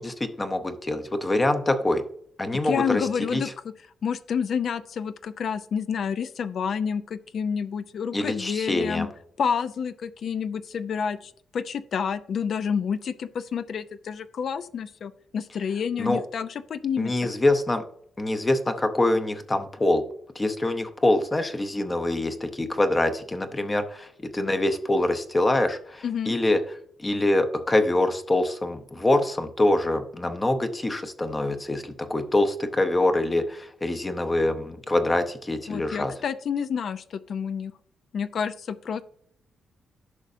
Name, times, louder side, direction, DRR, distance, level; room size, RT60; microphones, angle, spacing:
voice 1, 0.0-2.0 2.4-3.4 8.1-9.1 16.0-16.2 17.0-17.8 18.2-20.0 20.3-26.6 27.0-36.1, left 1 dB, 15° left, 8 dB, 0.7 m, -25 dB
voice 2, 2.5-3.7 4.0-9.1 9.4-17.1 26.0-26.3 35.7-37.7 38.1-39.0, left 7 dB, 55° left, 12 dB, 0.4 m, -29 dB
11.0 x 6.2 x 2.6 m, 0.63 s
wide cardioid pair, 160°, 0 cm